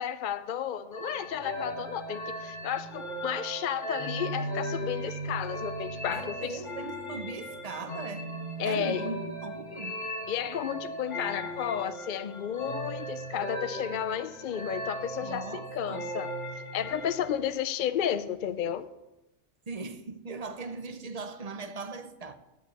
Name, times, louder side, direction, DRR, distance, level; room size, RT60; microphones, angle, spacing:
voice 1, 0.0-6.6 8.6-9.1 10.3-16.3 16.5-18.9, left 9 dB, 60° left, 0.5 m, -32 dB
sound 1, 0.9-17.3, equal, 35° left, 1.7 m, -37 dB
voice 2, 6.1-8.4 8.6-10.0 15.2-16.1 19.7-22.3, right 4 dB, 40° right, 0.7 m, -39 dB
9.7 x 7.2 x 6.9 m
omnidirectional pair, 1.2 m